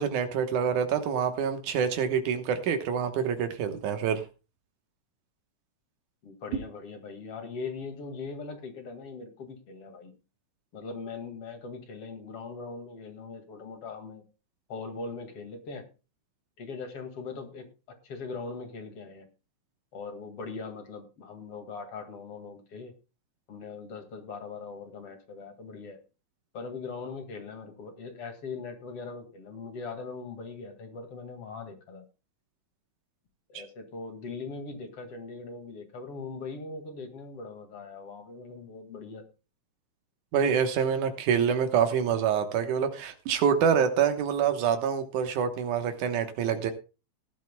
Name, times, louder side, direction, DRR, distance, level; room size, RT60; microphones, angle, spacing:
voice 1, 0.0-4.2 33.5-33.6 40.3-46.7, right 7 dB, 85° right, 7 dB, 2.7 m, -26 dB
voice 2, 6.2-10.1 10.7-14.2 14.7-15.9 16.6-19.3 19.9-22.9 23.5-26.0 26.5-32.1 33.5-39.2, left 4 dB, 50° left, 6 dB, 2.9 m, -40 dB
18.5 x 12.0 x 2.2 m, 0.31 s
omnidirectional pair, 3.4 m